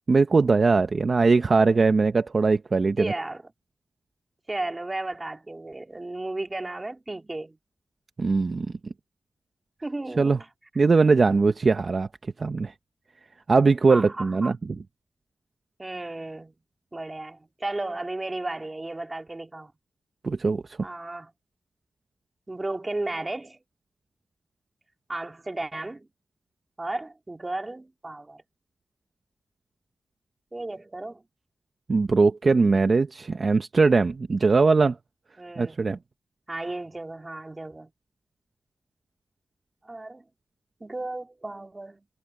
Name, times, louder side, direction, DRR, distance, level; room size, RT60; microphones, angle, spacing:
voice 1, 0.1-3.1 8.2-8.7 10.2-10.4 10.8-12.1 12.4-12.7 13.5-14.6 20.2-20.8 31.9-35.0 35.6-36.0, right 4 dB, 45° right, 0.8 m, -21 dB
voice 2, 3.0-3.4 4.5-7.6 9.8-10.5 13.9-14.5 15.8-16.5 16.9-19.7 20.8-21.3 22.5-23.6 25.1-26.1 26.8-28.4 30.5-31.2 35.4-35.8 36.5-37.9 39.8-40.2 40.8-42.1, right 2 dB, 20° right, 2.8 m, -34 dB
wide cardioid pair, 115°, 0 cm